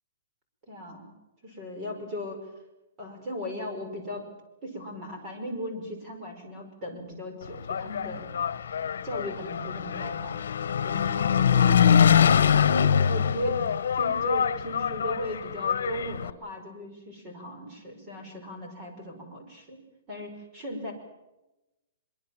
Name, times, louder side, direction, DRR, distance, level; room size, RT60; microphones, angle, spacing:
voice 1, 0.7-1.1 1.4-2.4 3.0-4.3 4.6-8.3 9.0-10.4 10.8-12.3 13.0-13.6 14.0-19.8 20.1-20.9, equal, 15° right, 2 dB, 5.4 m, -37 dB
Engine, 7.5-16.3, left 8 dB, 75° left, 1.3 m, -24 dB
24.0 x 23.5 x 7.3 m, 0.98 s
hypercardioid pair, 175°, 0 cm